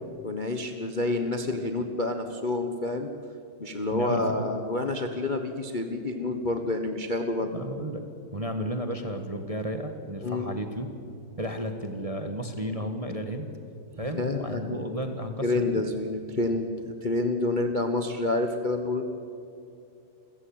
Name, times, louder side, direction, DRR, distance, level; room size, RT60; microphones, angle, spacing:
voice 1, 0.2-3.1 3.6-7.5 10.2-10.5 14.1-14.8 15.4-19.0, left 2 dB, 30° left, 6 dB, 1.0 m, -28 dB
voice 2, 3.9-4.5 7.5-8.0 8.3-10.9 11.4-13.5 14.0-15.8, equal, 20° right, 6 dB, 1.2 m, -33 dB
28.5 x 15.5 x 8.8 m, 2.6 s
omnidirectional pair, 2.4 m